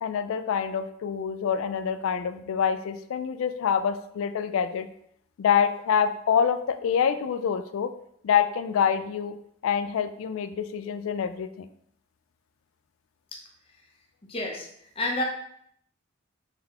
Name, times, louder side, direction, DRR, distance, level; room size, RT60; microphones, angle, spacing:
voice 1, 0.0-4.9 5.4-7.9 8.2-9.4 9.6-11.7, left 7 dB, 70° left, 10 dB, 0.3 m, -26 dB
voice 2, 14.3-14.7 15.0-15.2, left 1 dB, 25° left, 0 dB, 0.6 m, -28 dB
3.9 x 3.3 x 2.9 m, 0.71 s
head